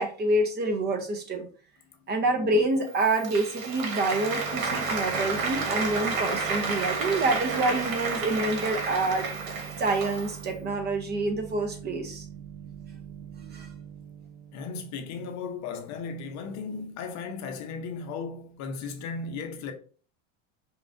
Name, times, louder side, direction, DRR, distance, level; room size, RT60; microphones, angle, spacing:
voice 1, 0.0-1.5 2.1-9.3 9.8-12.3 13.4-13.7, right 2 dB, 25° right, 0.7 m, -27 dB
Applause, 2.9-10.5, right 4 dB, 85° right, 1.3 m, -31 dB
sound 1, 4.1-15.6, right 8 dB, 55° right, 0.8 m, -44 dB
voice 2, 14.5-19.7, left 5 dB, 45° left, 0.8 m, -36 dB
5.5 x 2.4 x 2.6 m
supercardioid pair, 120°, 40 cm